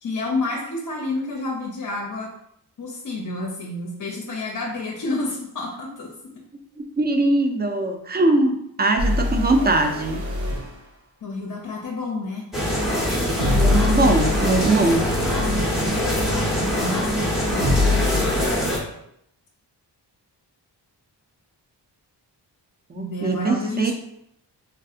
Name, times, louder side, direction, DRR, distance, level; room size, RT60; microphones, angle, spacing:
voice 1, 0.0-2.3 2.8-6.1 11.2-12.4 16.4-18.1 23.0-23.9, left 2 dB, 45° left, -2 dB, 0.6 m, -30 dB
voice 2, 6.5-8.5 8.8-10.2 13.5-15.1 22.9-23.9, right 2 dB, 25° right, 5 dB, 0.3 m, -21 dB
sound 1, 9.0-10.7 13.4-15.7 17.6-18.5, left 2 dB, 85° right, 0.6 m, -23 dB
sound 2, 12.5-18.8, equal, ahead, 0.8 m, -23 dB
3.3 x 2.6 x 2.4 m, 0.76 s
cardioid pair, 75°, 43 cm